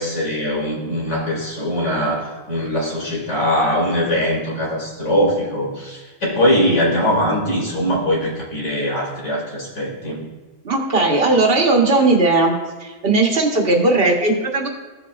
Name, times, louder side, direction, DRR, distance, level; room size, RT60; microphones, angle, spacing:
voice 1, 0.0-10.2, equal, 90° left, -4 dB, 2.7 m, -21 dB
voice 2, 10.6-12.5 12.8-14.7, right 2 dB, 55° right, 1 dB, 1.4 m, -17 dB
15.0 x 7.0 x 2.4 m, 1.2 s
omnidirectional pair, 1.2 m